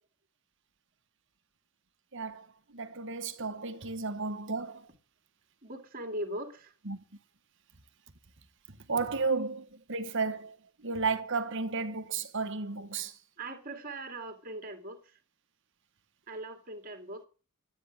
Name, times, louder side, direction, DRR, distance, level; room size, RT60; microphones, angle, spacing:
voice 1, 2.1-2.5 2.7-4.9 6.8-7.0 8.9-10.6 10.8-13.1, right 4 dB, 55° right, 1.6 m, -33 dB
voice 2, 5.6-6.7 13.4-15.0 16.3-17.2, right 1 dB, 40° right, 2.6 m, -40 dB
13.0 x 9.4 x 7.5 m
head